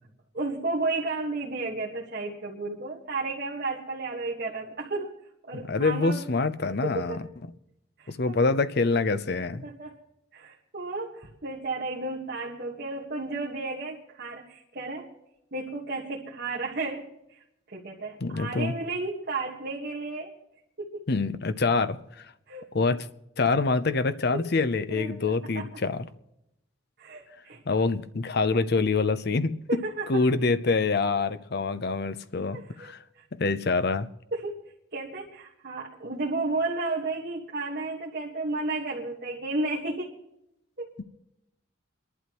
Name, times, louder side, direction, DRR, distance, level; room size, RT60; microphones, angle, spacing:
voice 1, 0.3-5.1 5.4-6.2 6.9-7.2 8.0-8.4 9.6-9.9 10.3-15.1 15.5-17.1 17.7-20.3 20.9-21.0 22.5-22.6 24.9-25.7 27.0-27.6 29.7-30.1 32.5-32.9 33.2-33.3 34.3-34.5 34.9-40.1 40.8-40.9, right 3 dB, 50° right, 1.6 m, -33 dB
voice 2, 5.7-7.2 8.1-9.7 18.2-18.7 21.1-22.3 22.7-23.1 23.4-26.1 27.7-29.8 30.1-33.0 33.4-34.1 41.0-41.1, left 3 dB, 55° left, 0.7 m, -26 dB
29.5 x 11.5 x 3.0 m
head